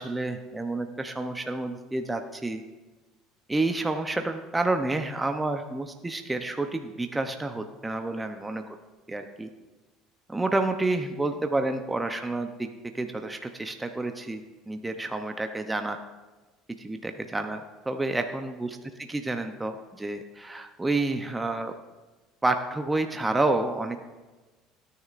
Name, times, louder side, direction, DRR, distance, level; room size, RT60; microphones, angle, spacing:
voice 1, 0.0-2.6 3.5-8.6 9.1-9.5 10.3-12.7 12.9-16.0 16.8-18.7 19.1-21.7 22.4-24.0, right 2 dB, 10° right, 6 dB, 0.6 m, -29 dB
17.0 x 9.6 x 2.5 m, 1.2 s
supercardioid pair, 105°, 0 cm